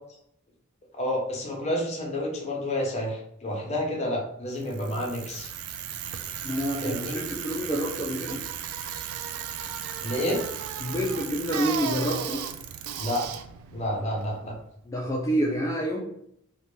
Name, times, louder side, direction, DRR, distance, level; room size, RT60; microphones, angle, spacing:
voice 1, 0.9-5.5 6.8-7.2 10.0-10.4 13.0-13.3 13.7-14.5, left 1 dB, 30° left, -1 dB, 0.7 m, -29 dB
Bicycle, 4.6-14.7, right 9 dB, 80° right, 0.3 m, -35 dB
voice 2, 6.4-8.4 10.8-12.5 14.9-16.0, equal, 15° left, -2 dB, 0.3 m, -28 dB
2.8 x 2.2 x 3.1 m, 0.73 s
head